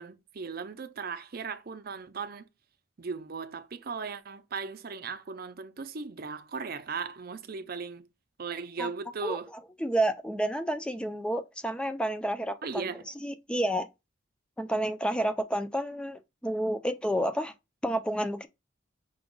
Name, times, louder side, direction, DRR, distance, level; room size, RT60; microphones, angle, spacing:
voice 1, 0.0-2.5 3.0-8.1 8.4-9.5 12.6-13.1, right 5 dB, 50° right, 0.6 m, -37 dB
voice 2, 9.8-12.8 13.2-13.9 14.6-17.5 17.8-18.5, right 1 dB, 5° left, 0.4 m, -30 dB
6.0 x 2.3 x 3.8 m
head